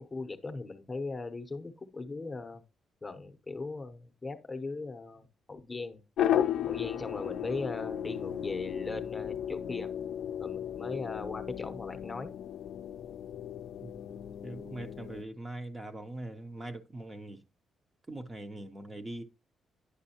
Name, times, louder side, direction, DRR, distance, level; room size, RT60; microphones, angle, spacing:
voice 1, 0.0-2.6 3.0-6.0 6.6-9.9 10.4-12.3, left 3 dB, 20° left, 0.7 m, -39 dB
sound 1, 6.2-15.2, left 10 dB, 75° left, 0.4 m, -35 dB
voice 2, 14.4-17.4 18.1-19.2, right 1 dB, 20° right, 0.6 m, -42 dB
9.7 x 6.0 x 2.8 m
cardioid pair, 145°, 0 cm